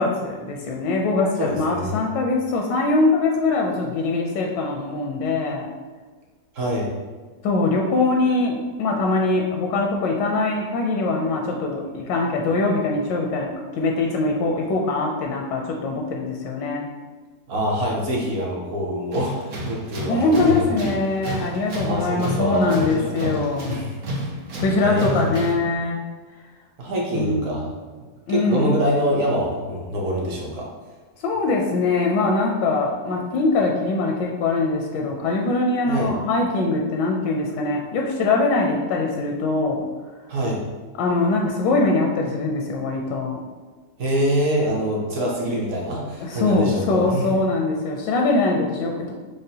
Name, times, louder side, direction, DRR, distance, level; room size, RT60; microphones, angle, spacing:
voice 1, 0.0-5.7 7.4-16.9 20.0-23.8 24.6-26.0 27.1-27.5 28.3-28.8 31.2-39.8 41.0-43.4 46.2-49.1, left 3 dB, 85° left, 0 dB, 1.2 m, -22 dB
voice 2, 1.4-2.0 6.5-6.9 17.5-20.7 21.3-21.5 21.9-23.3 23.7-23.9 24.8-25.3 26.8-27.6 28.3-30.7 35.9-36.1 40.3-40.6 44.0-47.2, equal, 55° right, -3 dB, 1.0 m, -25 dB
Tools, 19.1-25.7, equal, 75° right, 1.4 m, -31 dB
6.3 x 2.1 x 2.7 m, 1.4 s
omnidirectional pair, 1.9 m